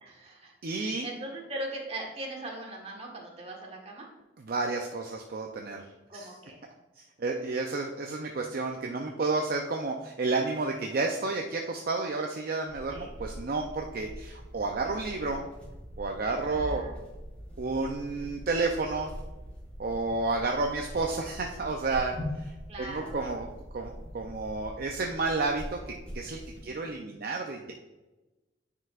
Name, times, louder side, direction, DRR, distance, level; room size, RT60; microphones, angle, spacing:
voice 1, 0.0-4.1 6.1-6.6 12.9-13.1 16.4-17.0 22.7-23.2 26.5-26.9, right 1 dB, 35° right, 0 dB, 1.4 m, -40 dB
voice 2, 0.6-1.1 4.4-5.8 6.1-6.3 7.0-15.5 16.0-16.8 17.6-19.1 19.8-23.5 23.7-27.7, right 3 dB, 50° right, 2 dB, 0.5 m, -31 dB
sound 1, 12.7-26.7, equal, 5° left, 2.1 m, -43 dB
9.7 x 4.6 x 2.4 m, 1.1 s
head